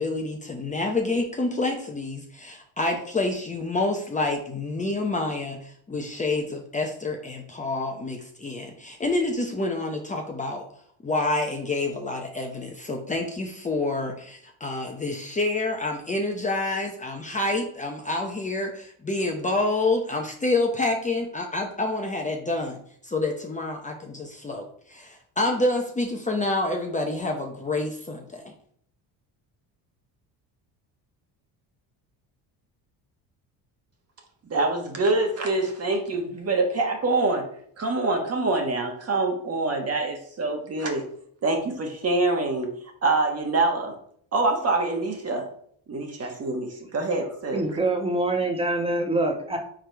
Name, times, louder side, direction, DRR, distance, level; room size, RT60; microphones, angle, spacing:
voice 1, 0.0-10.6 11.0-22.8 23.0-28.5, left 2 dB, 20° left, 1 dB, 0.8 m, -28 dB
voice 2, 34.5-37.5 37.8-41.0 41.4-42.7 43.0-44.0 44.3-45.5 45.9-47.8, right 2 dB, 35° right, 3 dB, 1.5 m, -25 dB
voice 3, 47.5-49.6, right 2 dB, 15° right, 3 dB, 1.2 m, -25 dB
5.0 x 4.3 x 4.6 m, 0.62 s
cardioid pair, 105°, 41 cm